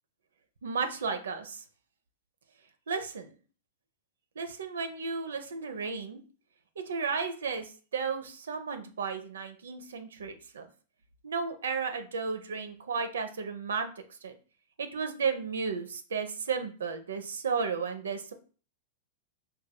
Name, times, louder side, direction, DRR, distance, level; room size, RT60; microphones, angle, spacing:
voice 1, 0.6-1.6 2.9-3.3 4.4-6.2 6.9-10.7 11.2-14.3 14.8-18.3, right 5 dB, 85° right, 8 dB, 0.7 m, -33 dB
4.5 x 3.2 x 2.2 m, 0.38 s
hypercardioid pair, 110°, 0 cm